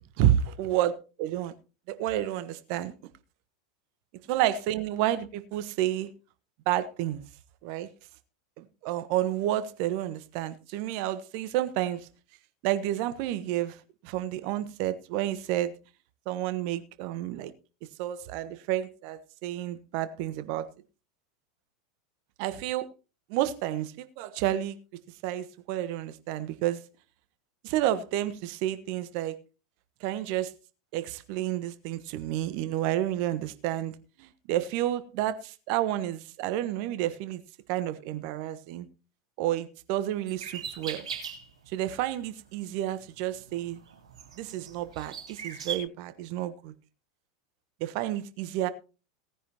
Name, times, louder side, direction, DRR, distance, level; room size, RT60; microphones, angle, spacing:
voice 1, 0.2-1.5 1.9-2.9 4.3-6.1 6.7-7.2 7.6-7.9 8.6-12.1 12.6-13.8 14.0-15.7 16.3-17.5 18.0-20.7 22.4-22.9 23.3-24.8 25.2-26.8 27.6-29.4 30.0-30.5 30.9-33.9 34.2-37.4 37.7-38.9 39.4-41.1 41.7-43.8 44.4-46.7 47.8-48.7, right 13 dB, 50° right, 1.3 m, -30 dB
sound 1, 40.3-41.6 42.2-42.4 43.0-45.8, right 7 dB, 70° right, 3.4 m, -39 dB
18.0 x 9.9 x 3.0 m
figure-of-eight pair, 85°, 3 cm